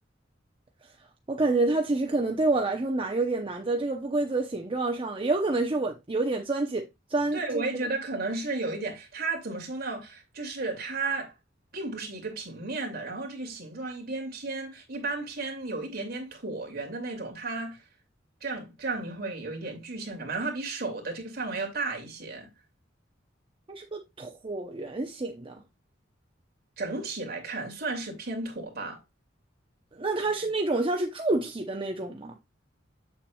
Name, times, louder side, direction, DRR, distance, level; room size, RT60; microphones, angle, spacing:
voice 1, 1.3-7.6 23.7-25.6 30.0-32.4, right 2 dB, 30° right, 0.8 m, -28 dB
voice 2, 7.3-11.3 11.7-17.8 18.4-22.5 26.8-29.0, right 3 dB, 55° right, 2.5 m, -33 dB
7.8 x 7.2 x 2.3 m
head